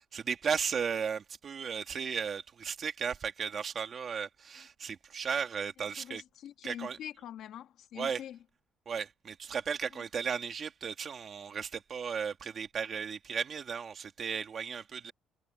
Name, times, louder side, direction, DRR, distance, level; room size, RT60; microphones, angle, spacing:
voice 1, 0.1-6.2 6.6-7.0 8.0-8.2 8.9-15.1, right 6 dB, 35° right, 2.4 m, -35 dB
voice 2, 5.9-8.4 9.9-10.0, left 10 dB, 65° left, 2.2 m, -45 dB
cardioid pair, 155°, 0 cm